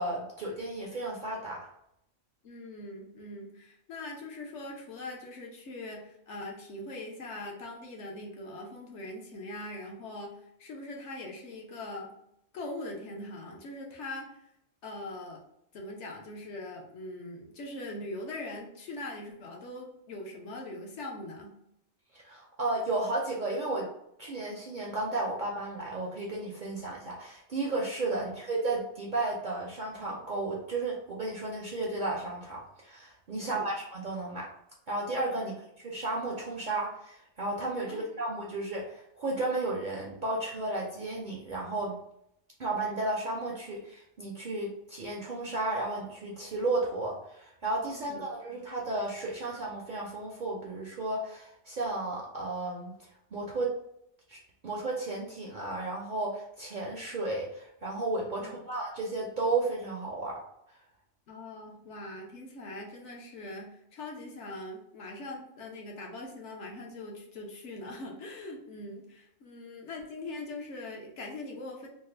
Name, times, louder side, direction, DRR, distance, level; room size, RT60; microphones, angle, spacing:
voice 1, 0.0-1.7 22.1-23.8 24.2-34.5 34.9-42.0 42.6-52.9 53.3-53.7 54.3-54.4 54.6-60.4, right 2 dB, 55° right, -2 dB, 0.5 m, -33 dB
voice 2, 2.4-12.1 12.5-14.4 14.8-15.4 15.7-21.5 28.1-28.2 33.4-33.7 35.4-35.5 37.8-38.1 47.9-48.3 58.4-58.5 61.3-71.9, left 2 dB, 70° left, 0 dB, 1.0 m, -42 dB
3.2 x 2.1 x 3.3 m, 0.77 s
omnidirectional pair, 1.3 m